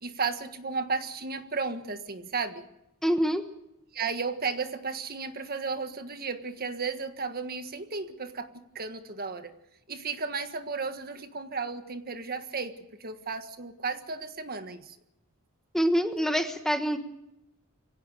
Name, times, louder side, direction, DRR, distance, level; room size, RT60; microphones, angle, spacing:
voice 1, 0.0-2.7 3.9-9.6 9.9-12.7 13.0-15.0, right 4 dB, 45° right, 8 dB, 1.6 m, -34 dB
voice 2, 3.0-3.4 15.7-17.0, equal, ahead, 7 dB, 1.4 m, -25 dB
24.5 x 17.0 x 6.7 m, 0.85 s
head